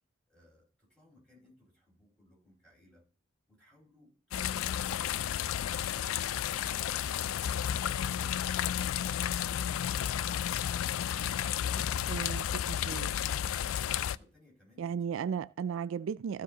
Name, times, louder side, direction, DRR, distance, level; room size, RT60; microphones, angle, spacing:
voice 1, 0.3-3.1 3.5-5.5 14.0-15.3, left 1 dB, 5° left, 5.0 m, -62 dB
sound 1, 4.3-14.2, left 10 dB, 90° left, 0.3 m, -32 dB
voice 2, 12.1-12.4 12.9-13.4 14.8-16.4, right 7 dB, 75° right, 0.3 m, -35 dB
14.5 x 5.2 x 3.9 m
head